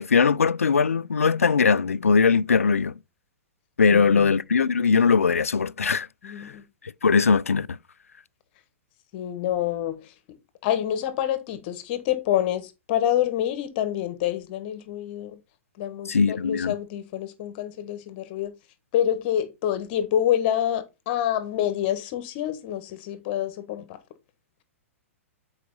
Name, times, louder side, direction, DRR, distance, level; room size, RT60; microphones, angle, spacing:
voice 1, 0.0-3.0 3.8-6.5 7.0-7.8 16.1-16.7, left 5 dB, 80° left, 0.4 m, -21 dB
voice 2, 3.9-4.4 6.2-6.6 9.1-10.4 10.6-15.4 15.8-18.5 18.9-24.0, left 11 dB, 45° left, 1.4 m, -27 dB
8.4 x 4.8 x 3.9 m
figure-of-eight pair, 110°, 7 cm